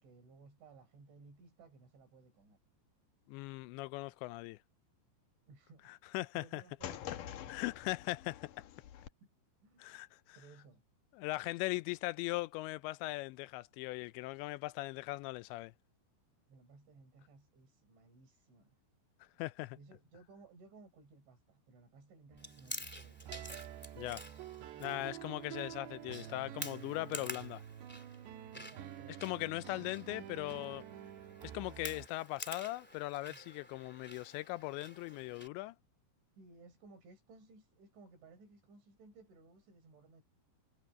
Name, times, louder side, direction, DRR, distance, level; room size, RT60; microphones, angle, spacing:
voice 1, 0.0-2.6 5.5-6.0 6.3-7.6 9.6-10.0 10.3-10.8 16.5-18.8 19.7-23.3 28.5-29.9 33.3-33.4 36.4-40.2, right 3 dB, 90° right, 9.1 m, -59 dB
voice 2, 3.3-4.6 5.9-6.6 7.5-8.5 9.8-10.4 11.1-15.7 19.2-19.8 24.0-24.2 24.8-27.6 29.2-30.8 31.5-35.8, left 20 dB, 85° left, 2.8 m, -39 dB
sound 1, 6.8-9.1, left 11 dB, 70° left, 2.0 m, -46 dB
sound 2, 22.3-32.1, right 11 dB, 75° right, 3.4 m, -49 dB
Chewing mastication, 22.4-35.5, equal, 5° left, 1.6 m, -50 dB
omnidirectional pair, 5.2 m